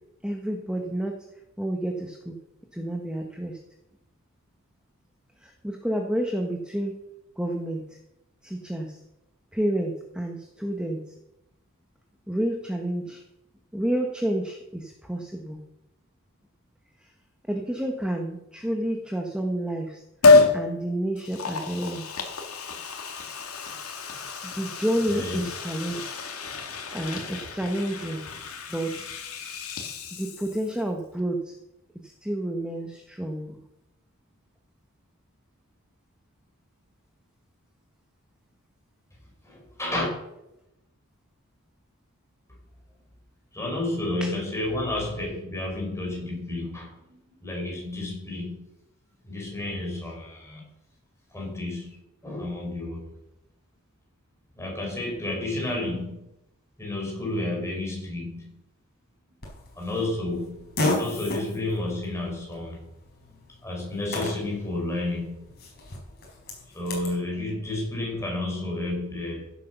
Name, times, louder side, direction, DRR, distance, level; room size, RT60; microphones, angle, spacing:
voice 1, 0.2-1.2 1.6-2.3 2.7-3.6 5.4-6.9 7.4-8.0 8.4-9.0 9.5-11.0 12.3-13.2 13.7-15.6 17.0-17.1 17.5-20.0 20.5-22.0 24.4-26.0 26.9-28.2 28.7-29.1 30.1-31.6 32.0-33.6 44.2-44.3, right 1 dB, 5° right, 2 dB, 1.2 m, -29 dB
Liquid, 20.2-20.6 21.2-30.8 31.1-31.2, left 3 dB, 85° left, 2.2 m, -26 dB
voice 2, 25.1-25.5 39.4-40.1 43.5-48.6 49.2-50.6 51.3-53.1 54.5-56.2 56.8-58.5 59.8-62.9 63.3-65.4 66.7-69.5, left 2 dB, 15° left, -1 dB, 4.7 m, -31 dB
Fart, 59.4-67.2, left 2 dB, 50° left, 4.3 m, -35 dB
15.5 x 8.2 x 5.9 m, 0.88 s
head